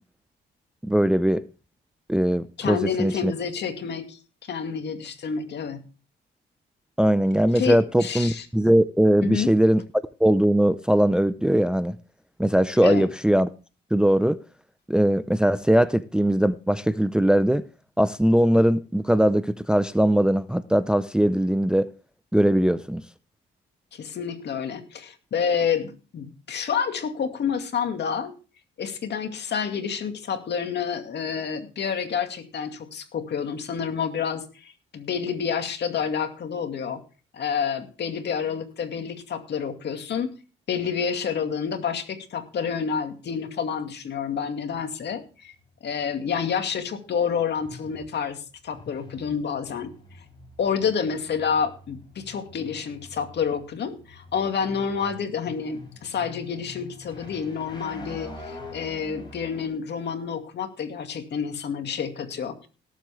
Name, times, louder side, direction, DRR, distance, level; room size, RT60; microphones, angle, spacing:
voice 1, 0.8-1.4 2.1-3.3 7.0-9.8 10.2-12.0 12.4-13.5 13.9-14.4 14.9-17.6 18.0-21.9 22.3-23.0, right 1 dB, 5° right, 0.5 m, -20 dB
voice 2, 2.6-4.2 4.5-5.8 7.5-8.5 9.2-9.5 12.8-13.1 23.9-28.3 28.8-37.0 37.3-40.3 40.7-45.5 45.8-49.9 50.6-62.7, left 7 dB, 60° left, 2.3 m, -29 dB
sound 1, 45.1-59.7, left 2 dB, 25° left, 6.8 m, -46 dB
18.0 x 7.7 x 3.5 m
cardioid pair, 90°, 20 cm